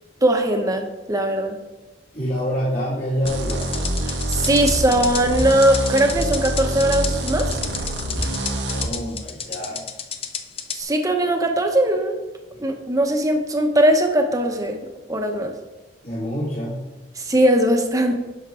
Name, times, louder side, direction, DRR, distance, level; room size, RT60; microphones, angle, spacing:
voice 1, 0.2-1.6 4.1-7.6 10.7-12.2 12.6-14.8 15.1-15.5 17.2-18.2, right 1 dB, 20° right, 4 dB, 1.0 m, -20 dB
voice 2, 2.1-3.6 8.7-9.9 16.0-16.9, equal, 50° left, -8 dB, 2.3 m, -27 dB
sound 1, 3.2-8.9, right 1 dB, 90° right, 1.4 m, -26 dB
sound 2, 3.3-10.8, left 7 dB, 35° left, 0.6 m, -31 dB
10.5 x 6.2 x 3.8 m, 1.1 s
head